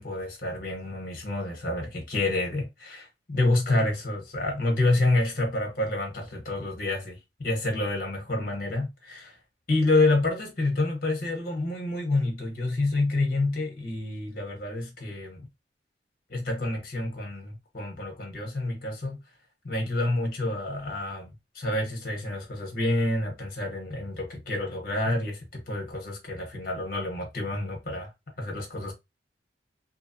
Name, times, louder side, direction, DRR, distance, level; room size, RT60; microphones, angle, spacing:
voice 1, 0.0-9.4 9.7-15.5 16.3-19.2 19.6-28.1 28.4-28.9, left 2 dB, 50° left, 1.0 m, -28 dB
2.7 x 2.2 x 2.6 m
head